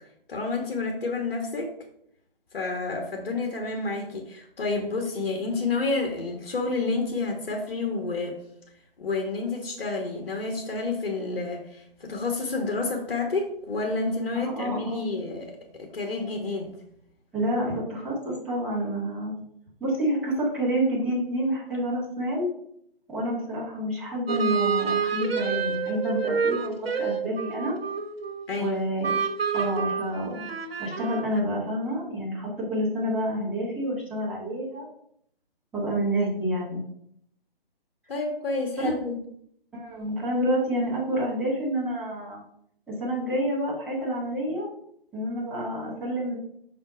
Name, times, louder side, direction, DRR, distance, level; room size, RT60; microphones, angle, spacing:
voice 1, 0.3-1.7 2.5-8.4 9.0-16.8 28.5-28.7 38.1-39.2, left 3 dB, 65° left, 2 dB, 1.5 m, -29 dB
voice 2, 14.3-15.1 17.3-19.3 19.8-22.5 23.1-27.7 28.6-29.1 29.5-30.4 30.8-34.9 35.7-36.8 38.8-38.9 39.7-42.4 42.9-44.7 45.1-46.4, equal, 5° right, -9 dB, 1.7 m, -28 dB
sound 1, 24.3-28.6 29.0-31.4, right 6 dB, 85° right, 1.0 m, -28 dB
5.9 x 4.3 x 5.1 m, 0.69 s
hypercardioid pair, 160°, 30 cm